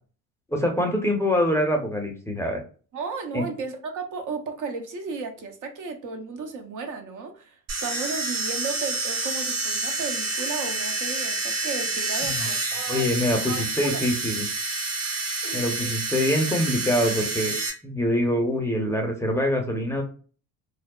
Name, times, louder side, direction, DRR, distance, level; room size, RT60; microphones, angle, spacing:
voice 1, 0.5-2.6 3.3-3.4 12.2-12.5 12.9-14.5 15.5-17.5 17.8-20.0, equal, 5° left, 0.6 m, -24 dB
voice 2, 2.9-13.1 13.5-14.0 15.3-15.9, right 4 dB, 50° right, 0.7 m, -34 dB
sound 1, 7.7-17.7, right 3 dB, 85° right, 1.1 m, -28 dB
2.6 x 2.0 x 2.3 m
supercardioid pair, 70°, 41 cm